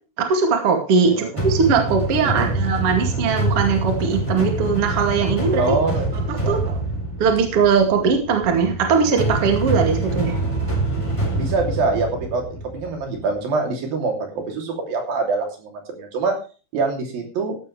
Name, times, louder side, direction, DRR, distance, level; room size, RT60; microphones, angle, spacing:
voice 1, 0.2-5.8 6.5-6.8 7.2-10.4, right 5 dB, 40° right, 3 dB, 2.9 m, -20 dB
voice 2, 1.0-1.5 2.2-2.6 5.6-6.0 6.3-6.6 11.3-16.4 16.7-17.6, right 3 dB, 65° right, 3 dB, 4.7 m, -25 dB
sound 1, 1.4-13.3, right 2 dB, 10° left, 4.1 m, -25 dB
15.5 x 11.5 x 3.3 m, 0.34 s
omnidirectional pair, 4.4 m